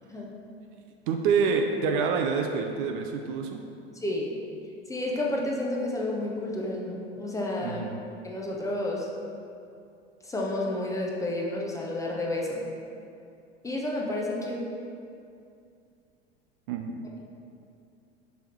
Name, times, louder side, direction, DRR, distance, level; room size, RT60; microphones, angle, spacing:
voice 1, 1.1-3.6 7.6-8.0 16.7-17.2, right 5 dB, 50° right, 3 dB, 0.5 m, -27 dB
voice 2, 4.0-4.3 4.9-7.8 8.2-9.1 10.2-12.6 13.6-14.6, left 1 dB, 10° left, -3 dB, 0.8 m, -30 dB
6.2 x 3.4 x 4.4 m, 2.5 s
figure-of-eight pair, 80°, 32 cm